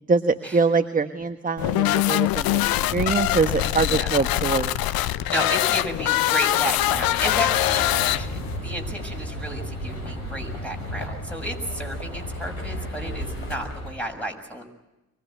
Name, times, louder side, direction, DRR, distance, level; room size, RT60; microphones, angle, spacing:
voice 1, 0.1-2.6 2.9-4.7, right 4 dB, 20° right, 8 dB, 1.3 m, -23 dB
sound 1, 1.6-8.6, left 15 dB, 60° left, 0.9 m, -23 dB
sound 2, 2.6-13.5, left 2 dB, 30° left, 3.1 m, -42 dB
voice 2, 5.0-14.6, equal, 5° left, 3 dB, 6.9 m, -32 dB
sound 3, 6.8-13.9, equal, 85° left, 5.7 m, -34 dB
24.0 x 19.5 x 9.3 m, 0.99 s
hypercardioid pair, 50°, 40 cm